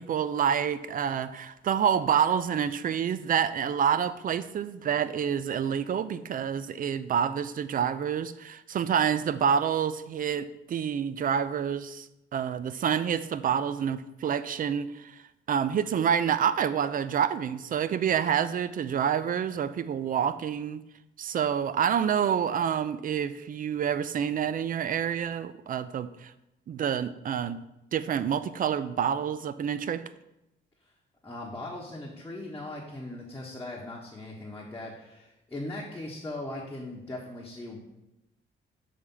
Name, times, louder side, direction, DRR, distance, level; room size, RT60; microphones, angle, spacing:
voice 1, 0.0-12.1 12.3-15.2 15.5-20.8 21.2-26.3 26.7-27.6 27.9-30.0, right 8 dB, 45° right, 0.4 m, -28 dB
voice 2, 31.2-37.8, left 2 dB, 15° left, 1.1 m, -39 dB
7.1 x 3.3 x 5.4 m
cardioid pair, 90°, 20 cm